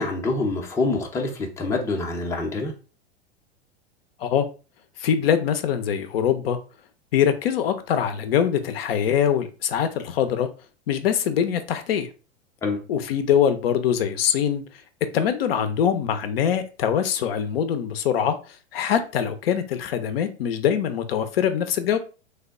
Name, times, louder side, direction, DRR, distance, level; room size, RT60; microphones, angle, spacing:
voice 1, 0.0-2.7 12.6-12.8, left 3 dB, 10° left, 0.5 m, -26 dB
voice 2, 5.0-6.6 7.1-10.5 10.9-12.1 12.9-14.6 15.1-22.0, left 8 dB, 60° left, 0.5 m, -23 dB
3.3 x 2.1 x 3.5 m
hypercardioid pair, 100°, 33 cm